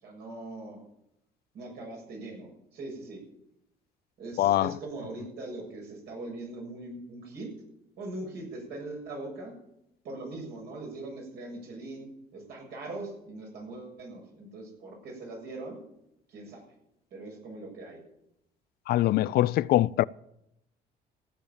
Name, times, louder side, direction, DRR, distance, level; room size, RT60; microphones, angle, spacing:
voice 1, 0.0-0.8 1.5-3.2 4.2-7.5 8.0-9.5 10.0-15.8 16.3-16.6 17.1-18.0, right 2 dB, 75° right, 7.3 m, -41 dB
voice 2, 4.4-4.7 18.9-20.0, left 15 dB, 65° left, 0.5 m, -23 dB
15.5 x 8.6 x 8.8 m
cardioid pair, 110°, 17 cm